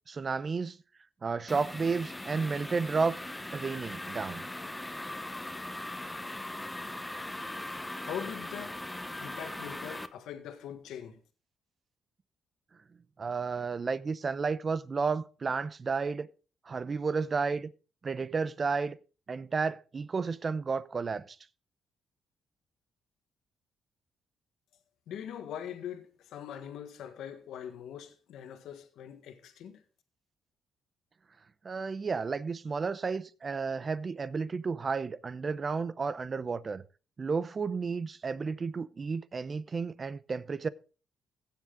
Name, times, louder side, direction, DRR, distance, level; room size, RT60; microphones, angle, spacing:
voice 1, 0.1-0.8 1.2-3.2 3.5-4.5 13.2-16.3 16.7-17.7 18.0-19.0 19.3-21.4 31.6-36.8 37.2-40.7, right 4 dB, 35° right, 0.7 m, -32 dB
sound 1, 1.5-10.1, left 1 dB, 10° left, 0.9 m, -40 dB
voice 2, 8.0-8.8 9.2-11.2 25.1-29.8, left 9 dB, 80° left, 1.4 m, -42 dB
16.0 x 7.4 x 3.8 m
cardioid pair, 90°, 0 cm